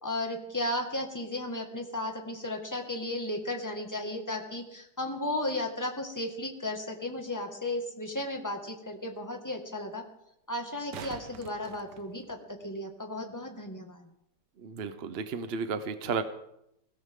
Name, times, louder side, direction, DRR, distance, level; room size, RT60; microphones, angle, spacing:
voice 1, 0.0-10.0 10.5-14.1, left 1 dB, 10° left, 3 dB, 1.8 m, -34 dB
sound 1, 7.7-7.8 10.6-12.7 15.6-15.7, right 8 dB, 75° right, 1.5 m, -46 dB
voice 2, 14.6-16.2, right 5 dB, 50° right, 10 dB, 0.7 m, -33 dB
21.5 x 16.0 x 3.8 m, 0.79 s
omnidirectional pair, 2.0 m